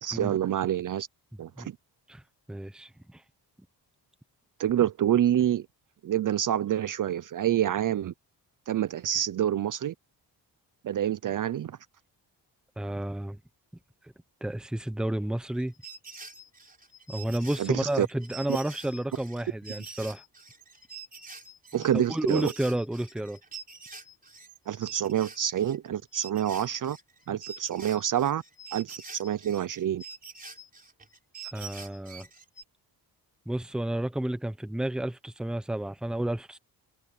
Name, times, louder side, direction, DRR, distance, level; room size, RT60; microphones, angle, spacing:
voice 1, 0.0-1.1 1.4-1.8 4.6-5.7 6.0-8.1 8.7-9.9 10.8-11.8 17.6-18.1 21.7-22.5 24.7-27.0 27.3-28.4 28.7-30.0, right 10 dB, 50° right, 0.6 m, -27 dB
voice 2, 2.5-3.2 12.8-13.4 14.4-15.7 17.1-20.2 21.9-23.4 31.5-32.3 33.5-36.6, right 1 dB, ahead, 0.8 m, -31 dB
sound 1, 15.6-25.9 26.1-32.6, right 4 dB, 20° right, 4.3 m, -46 dB
wide cardioid pair, 160°, 43 cm